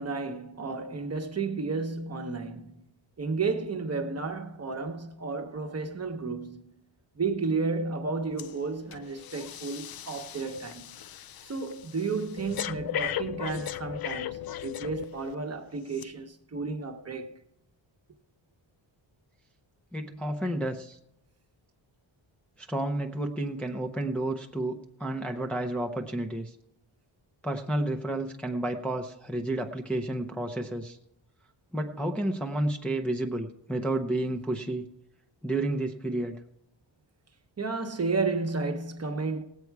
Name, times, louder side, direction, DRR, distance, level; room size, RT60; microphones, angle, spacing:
voice 1, 0.0-2.7 3.2-6.7 7.2-10.9 11.4-17.3 37.6-39.4, right 4 dB, 35° right, 1.0 m, -32 dB
Breathing, 8.4-8.6 8.9-15.4 15.9-16.0, left 11 dB, 55° left, 0.5 m, -37 dB
voice 2, 19.9-21.0 22.6-26.5 27.4-31.0 31.7-34.9 35.4-36.4, right 1 dB, 5° left, 0.6 m, -31 dB
17.5 x 8.2 x 4.7 m
wide cardioid pair, 165°, 46 cm